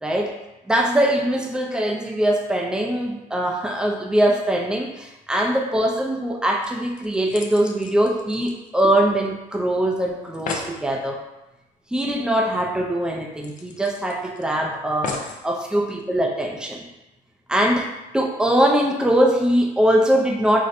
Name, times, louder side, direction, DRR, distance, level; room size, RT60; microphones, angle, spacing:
voice 1, 0.0-0.3 0.7-11.2 11.9-16.8 17.5-17.9 18.1-20.7, right 1 dB, 5° right, 1 dB, 0.5 m, -22 dB
sound 1, 6.3-6.4 6.6-9.3 9.5-9.6 10.0-10.1 10.2-10.8 12.3-12.4 12.7-12.8 13.4-14.4 15.0-15.4 16.2-16.3, left 4 dB, 45° left, 0.5 m, -35 dB
4.1 x 2.1 x 2.6 m, 0.99 s
supercardioid pair, 80°, 19 cm